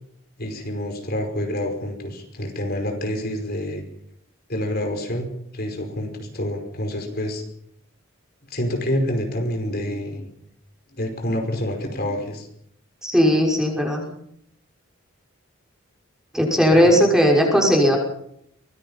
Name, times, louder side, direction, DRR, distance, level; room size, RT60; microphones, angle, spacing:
voice 1, 0.4-3.8 4.5-5.3 5.5-7.4 8.5-10.3 10.9-12.5 16.7-16.9, left 1 dB, 50° left, 4 dB, 5.2 m, -27 dB
voice 2, 13.0-14.1 16.3-18.0, equal, 5° right, 0 dB, 5.8 m, -17 dB
25.0 x 21.0 x 5.6 m, 0.72 s
head